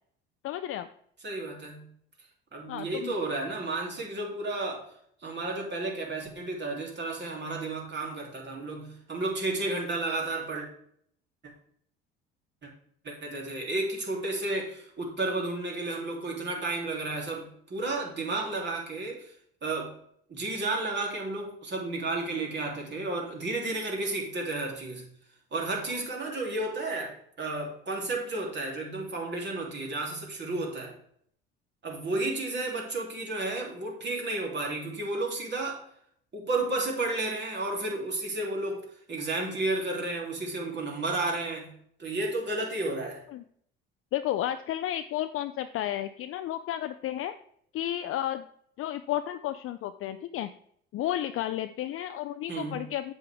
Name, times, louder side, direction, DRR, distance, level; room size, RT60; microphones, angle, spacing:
voice 1, 0.4-0.9 2.7-3.1 43.3-43.4 44.1-47.3 47.7-48.4 48.8-50.5 50.9-53.1, left 12 dB, 45° left, 10 dB, 0.5 m, -32 dB
voice 2, 1.2-1.9 2.5-4.9 5.2-10.7 12.6-12.7 13.0-19.3 19.6-19.9 20.3-25.1 25.5-30.9 31.8-35.8 36.3-41.7 42.0-43.2 52.5-52.8, right 2 dB, 35° right, 0 dB, 3.3 m, -32 dB
7.5 x 7.5 x 3.6 m, 0.65 s
hypercardioid pair, 65°, 29 cm